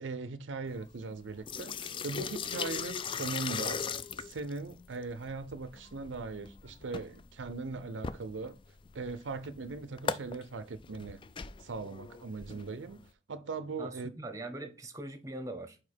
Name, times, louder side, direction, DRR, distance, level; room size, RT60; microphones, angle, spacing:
voice 1, 0.0-3.9 4.2-8.6 8.9-11.2 11.6-13.0 13.3-14.1, right 4 dB, 75° right, 0.5 m, -39 dB
sound 1, 0.7-13.1, left 6 dB, 25° left, 0.3 m, -39 dB
voice 2, 13.8-15.8, right 1 dB, 15° right, 0.8 m, -41 dB
4.9 x 4.4 x 4.3 m
head